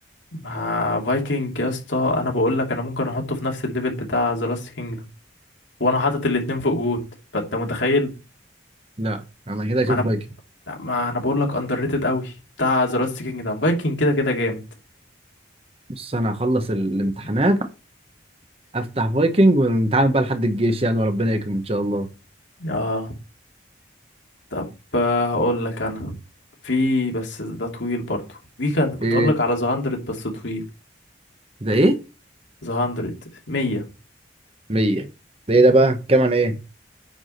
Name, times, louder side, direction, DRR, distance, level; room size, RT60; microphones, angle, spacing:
voice 1, 0.3-5.0 5.8-7.0 7.3-8.1 9.8-10.1 10.7-14.6 22.6-23.1 24.5-24.7 24.9-26.1 26.6-28.2 28.6-30.6 32.6-33.1 33.5-33.8, left 2 dB, 80° left, 2.7 m, -24 dB
voice 2, 9.0-10.2 16.0-17.7 18.7-22.1 29.0-29.3 31.6-32.0 34.7-35.1 35.5-36.6, right 1 dB, 30° right, 1.0 m, -20 dB
9.2 x 4.8 x 6.5 m
head